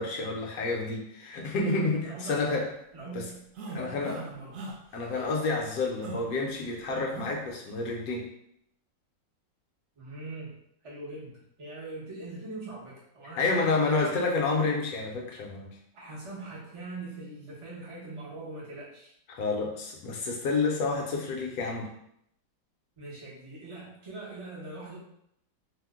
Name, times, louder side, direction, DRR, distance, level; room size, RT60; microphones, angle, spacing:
voice 1, 0.0-2.7 3.7-4.2 4.9-8.3 13.4-15.8 19.3-21.9, left 3 dB, 70° left, 0 dB, 1.0 m, -29 dB
voice 2, 2.0-2.6 2.9-3.3 3.7-4.6 10.0-10.6 10.8-13.9 15.9-19.1 23.0-25.0, right 2 dB, 45° right, -7 dB, 0.4 m, -42 dB
sound 1, 3.6-4.3 4.5-4.8 5.1-5.3 6.0-6.2 7.1-7.4, right 3 dB, 70° right, 0.8 m, -39 dB
2.9 x 2.0 x 3.4 m, 0.74 s
omnidirectional pair, 1.8 m